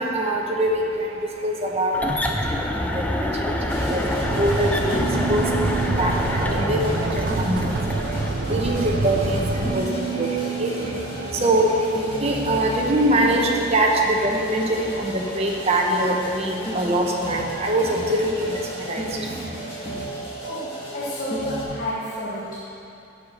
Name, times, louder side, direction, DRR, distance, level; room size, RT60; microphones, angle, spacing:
voice 1, 0.0-19.9, right 1 dB, 30° right, -1 dB, 1.0 m, -24 dB
sound 1, 1.9-8.4, left 1 dB, 5° left, 0.4 m, -27 dB
sound 2, 3.7-21.6, right 2 dB, 25° left, 1.8 m, -32 dB
sound 3, 4.2-9.8, right 3 dB, 45° right, 0.5 m, -27 dB
voice 2, 20.4-22.6, equal, 45° left, -7 dB, 1.1 m, -30 dB
7.9 x 6.8 x 6.5 m, 2.8 s
head